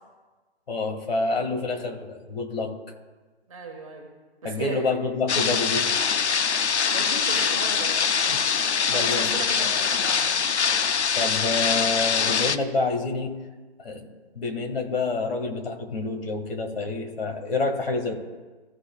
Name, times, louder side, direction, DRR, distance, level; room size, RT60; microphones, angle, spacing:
voice 1, 0.7-2.7 4.4-5.9 7.3-7.6 8.3-9.4 11.1-13.3 13.8-18.2, left 3 dB, 60° left, 3 dB, 2.2 m, -28 dB
voice 2, 3.5-4.1 4.4-4.9 6.4-6.6 6.9-8.0 8.9-10.4, right 3 dB, 30° right, 0 dB, 1.7 m, -37 dB
sound 1, 5.3-12.6, left 6 dB, 85° left, 0.7 m, -23 dB
sound 2, 5.4-7.1, right 4 dB, ahead, 3.3 m, -48 dB
16.5 x 7.4 x 2.4 m, 1.3 s
hypercardioid pair, 170°, 33 cm